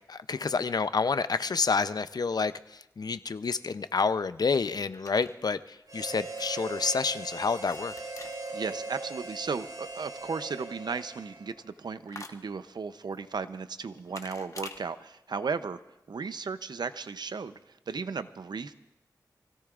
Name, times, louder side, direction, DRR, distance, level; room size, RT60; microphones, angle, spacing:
voice 1, 0.1-7.9, left 4 dB, 70° left, 13 dB, 0.5 m, -29 dB
sound 1, 3.6-14.8, left 3 dB, 50° left, 1.1 m, -51 dB
Harmonica, 5.9-11.7, right 2 dB, 70° right, 7.3 m, -40 dB
voice 2, 8.5-15.8 16.1-17.6 17.9-18.7, right 5 dB, 90° right, 12 dB, 0.6 m, -35 dB
27.0 x 17.0 x 2.5 m, 0.89 s
wide cardioid pair, 60°, 7 cm